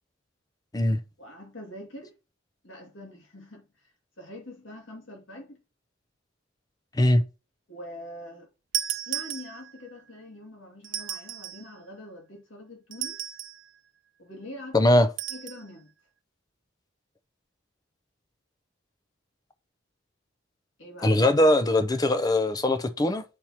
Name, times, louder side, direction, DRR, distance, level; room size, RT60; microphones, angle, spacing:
voice 1, 1.2-2.1 2.6-3.9 4.2-5.6 7.7-8.5 9.1-13.2 14.2-14.9 15.3-15.9 20.8-21.3, left 1 dB, 80° left, 2.1 m, -44 dB
sound 1, 8.7-9.9 10.8-11.7 12.9-13.7 15.2-15.6, right 11 dB, 70° right, 0.5 m, -34 dB
voice 2, 14.7-15.1 21.0-23.2, left 1 dB, 20° left, 0.5 m, -21 dB
8.5 x 4.5 x 2.8 m
head